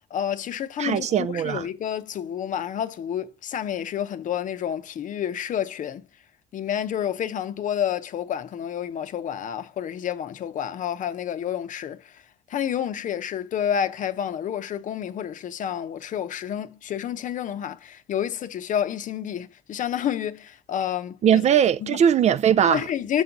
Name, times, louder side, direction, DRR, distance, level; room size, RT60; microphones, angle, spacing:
voice 1, 0.1-6.0 6.5-12.2 12.5-21.4 21.8-22.0 22.7-23.2, left 9 dB, 50° left, 0.7 m, -29 dB
voice 2, 0.8-1.7 21.2-22.8, right 9 dB, 40° right, 0.4 m, -20 dB
7.0 x 3.9 x 5.8 m
cardioid pair, 110°, 17 cm